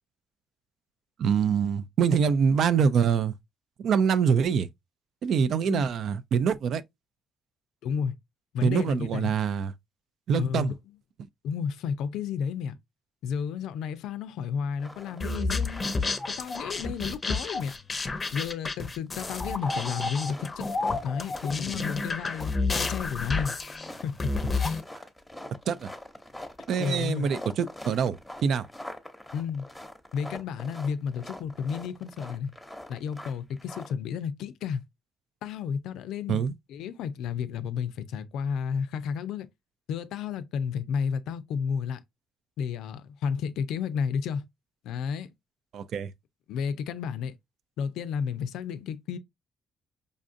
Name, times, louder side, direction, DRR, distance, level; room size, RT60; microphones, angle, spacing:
voice 1, 1.2-3.3 3.8-4.7 5.2-6.8 8.6-9.7 10.3-10.7 25.0-25.1 25.7-25.9 26.7-28.7 36.3-36.5 45.7-46.1, right 7 dB, 70° right, 0.4 m, -25 dB
voice 2, 7.8-8.2 8.5-9.3 10.4-10.7 11.4-12.8 13.2-15.8 16.3-17.7 18.3-20.6 21.0-23.6 24.0-24.3 26.8-27.3 29.3-29.7 30.1-32.5 32.9-34.8 35.4-36.4 36.7-39.5 39.9-42.0 42.6-44.4 44.8-45.3 46.5-47.4 47.8-49.2, left 7 dB, 85° left, 0.4 m, -32 dB
sound 1, 14.8-15.3 15.6-17.1 17.3-18.5 19.1-33.9, left 1 dB, 5° left, 0.9 m, -44 dB
sound 2, 15.2-24.8, left 3 dB, 30° left, 0.6 m, -30 dB
5.1 x 2.5 x 2.5 m
cardioid pair, 90°, 0 cm